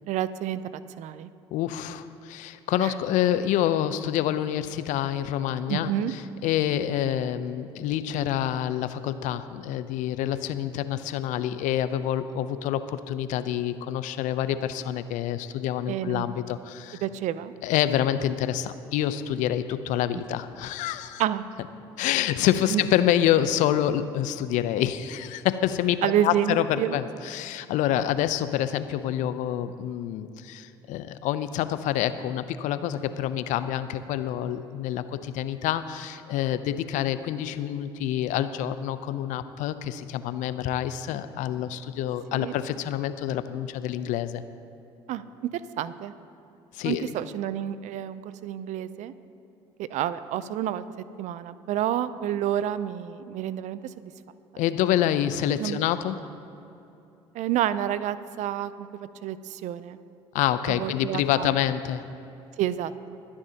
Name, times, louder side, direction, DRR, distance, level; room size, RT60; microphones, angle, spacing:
voice 1, 0.0-1.3 2.8-2.9 5.7-6.1 15.9-16.2 17.0-17.5 21.2-21.4 22.7-22.8 26.0-27.0 42.3-42.5 45.1-45.2 45.5-46.1 46.8-49.1 49.8-54.1 55.6-55.8 57.3-60.0 60.7-61.6 62.6-63.2, right 11 dB, 60° right, 15 dB, 0.6 m, -29 dB
voice 2, 1.5-17.0 17.6-21.2 22.0-44.4 46.7-47.1 54.6-56.2 60.3-62.0, left 11 dB, 65° left, 12 dB, 0.6 m, -27 dB
22.0 x 9.8 x 2.9 m, 2.8 s
hypercardioid pair, 60°, 14 cm